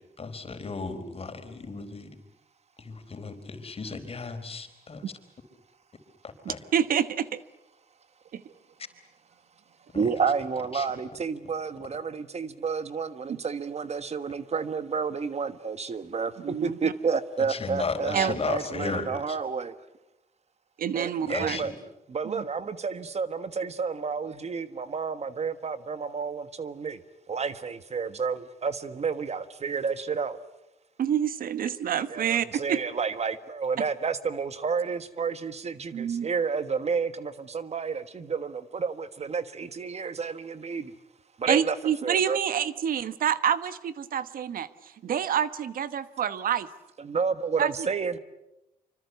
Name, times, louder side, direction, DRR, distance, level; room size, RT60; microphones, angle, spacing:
voice 1, 0.2-2.1 2.8-5.1 6.5-6.6 10.7-10.9 17.5-19.4 21.3-21.7, left 4 dB, 40° left, 7 dB, 4.3 m, -34 dB
voice 2, 6.4-7.4 8.3-8.4 16.4-16.9 18.1-18.3 20.8-21.6 22.2-22.4 31.0-32.8 35.9-36.3 41.5-46.7 47.6-47.7, right 9 dB, 70° right, 14 dB, 1.2 m, -27 dB
voice 3, 9.9-19.7 20.9-21.7 22.1-27.0 27.3-30.4 32.1-40.9 41.4-41.7 42.0-42.4 47.0-48.2, right 5 dB, 45° right, 12 dB, 1.4 m, -30 dB
26.0 x 25.0 x 8.2 m, 0.91 s
cardioid pair, 80°, 15 cm